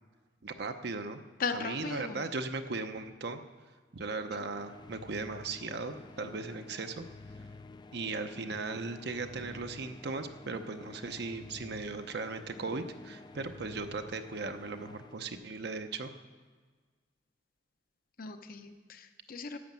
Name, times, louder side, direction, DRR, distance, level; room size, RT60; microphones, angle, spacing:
voice 1, 0.4-1.2 1.5-3.4 3.9-7.0 7.9-16.1, right 3 dB, 65° right, 7 dB, 0.8 m, -37 dB
voice 2, 1.4-2.3 4.4-4.5 18.2-19.6, left 4 dB, 55° left, 7 dB, 0.8 m, -37 dB
sound 1, 4.0-15.9, left 3 dB, 25° left, 0.4 m, -50 dB
11.0 x 8.3 x 7.6 m, 1.5 s
head